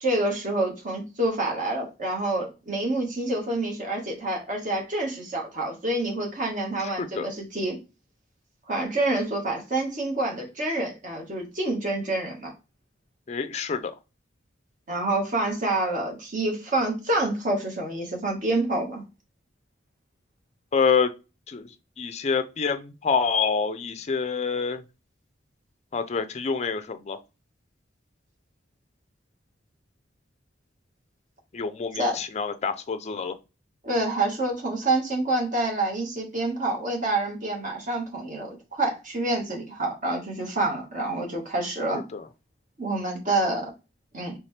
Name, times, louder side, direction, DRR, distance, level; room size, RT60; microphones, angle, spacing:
voice 1, 0.0-7.8 8.7-12.5 14.9-19.0 32.0-32.2 33.8-42.0 42.8-43.7 44.1-44.3, right 2 dB, 45° right, 1.6 m, -27 dB
voice 2, 6.8-7.3 13.3-13.9 20.7-21.1 21.5-21.7 22.0-24.8 25.9-27.2 31.5-33.3 42.1-42.3, left 5 dB, 35° left, 0.4 m, -27 dB
4.2 x 3.3 x 3.3 m
head